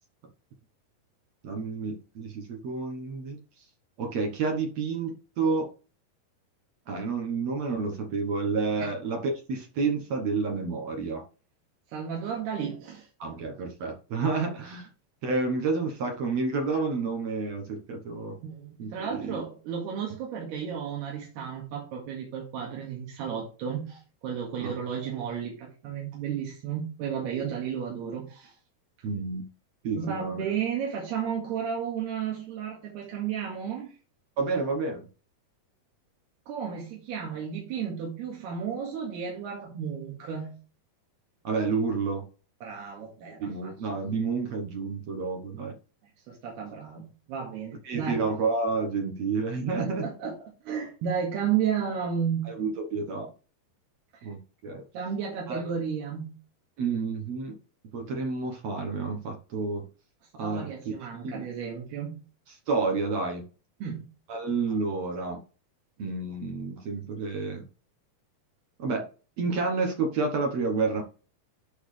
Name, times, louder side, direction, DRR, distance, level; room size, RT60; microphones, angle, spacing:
voice 1, 1.4-3.4 4.0-5.7 6.9-11.2 13.2-14.9 15.2-18.4 18.8-19.4 24.6-24.7 29.0-29.4 29.8-30.4 34.4-35.1 41.4-42.2 43.4-45.7 47.8-50.1 52.4-53.3 54.2-54.9 55.5-55.8 56.8-57.6 57.9-59.9 60.3-60.7 61.2-61.4 62.7-63.4 64.3-65.4 66.0-67.7 68.8-69.1 69.4-71.0, right 4 dB, 65° right, 1.8 m, -30 dB
voice 2, 11.9-13.1 18.4-28.5 30.0-33.9 36.5-40.6 42.6-43.7 46.3-48.3 49.7-50.4 50.6-52.5 54.1-54.3 54.9-56.4 60.4-62.2 63.8-64.1, right 7 dB, 85° right, 4.0 m, -33 dB
12.0 x 4.2 x 3.3 m
omnidirectional pair, 4.5 m